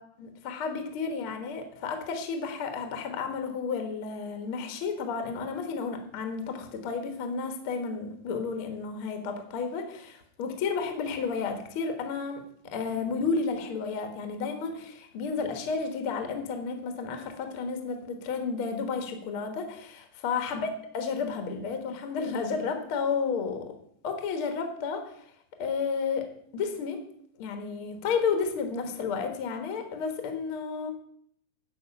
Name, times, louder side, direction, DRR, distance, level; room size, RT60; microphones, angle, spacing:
voice 1, 0.0-23.7 24.0-25.2 25.6-26.3 26.5-27.0 27.4-30.9, left 5 dB, 80° left, 6 dB, 1.2 m, -32 dB
11.5 x 5.0 x 7.1 m, 0.66 s
omnidirectional pair, 4.8 m